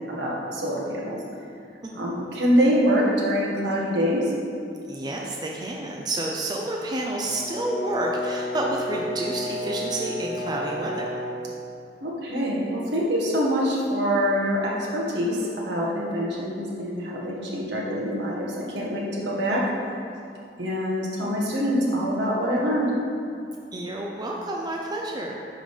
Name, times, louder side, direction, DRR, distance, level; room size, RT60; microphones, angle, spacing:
voice 1, 0.2-1.2 1.9-4.3 12.0-19.6 20.6-22.9, equal, 75° right, -4 dB, 1.7 m, -25 dB
voice 2, 4.9-11.1 23.7-25.4, right 1 dB, 25° right, -1 dB, 0.5 m, -29 dB
Brass instrument, 7.3-11.5, left 1 dB, 45° left, 0.5 m, -31 dB
10.0 x 3.9 x 5.0 m, 2.4 s
head